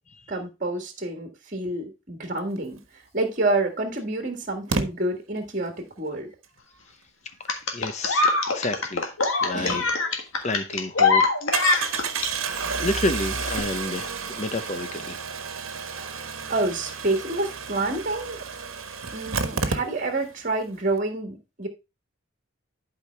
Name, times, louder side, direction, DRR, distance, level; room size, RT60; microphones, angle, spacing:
voice 1, 0.3-6.3 9.4-9.9 16.0-16.1 16.5-18.4 19.1-21.7, right 2 dB, 40° right, 1.7 m, -28 dB
Engine starting, 3.2-3.3 4.7-4.8 9.9-10.0 10.4-10.5 11.5-20.3 20.6-20.7 20.9-21.0, right 5 dB, 90° right, 1.3 m, -31 dB
sound 1, 7.5-12.3 13.5-13.6, left 4 dB, 75° left, 1.6 m, -23 dB
voice 2, 7.7-9.1 9.4-9.8 10.4-11.2 11.7-12.0 12.7-15.2, left 2 dB, 35° left, 0.8 m, -30 dB
11.5 x 5.1 x 3.3 m
head